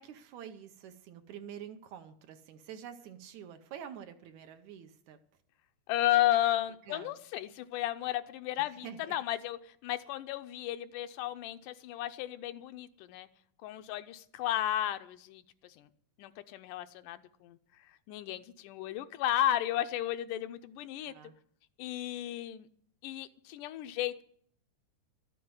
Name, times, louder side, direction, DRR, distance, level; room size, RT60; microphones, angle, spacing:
voice 1, 0.0-5.2 6.9-7.2 8.6-9.2 21.0-21.3, right 9 dB, 70° right, 8 dB, 2.0 m, -47 dB
voice 2, 5.9-13.3 13.6-15.9 16.2-21.1 21.8-22.7 23.0-24.2, left 13 dB, 80° left, 10 dB, 2.2 m, -33 dB
13.0 x 7.7 x 9.5 m, 0.63 s
omnidirectional pair, 3.7 m